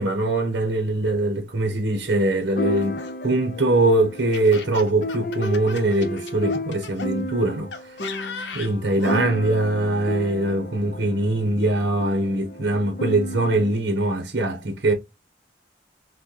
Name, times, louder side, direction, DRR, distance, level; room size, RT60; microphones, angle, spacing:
voice 1, 0.0-8.1 8.5-14.9, right 2 dB, 65° right, 0.9 m, -22 dB
sound 1, 2.6-13.8, left 1 dB, 50° left, 0.5 m, -33 dB
Laughter, 2.7-7.1 7.7-9.3, left 4 dB, 80° left, 0.7 m, -38 dB
6.0 x 2.2 x 3.1 m
head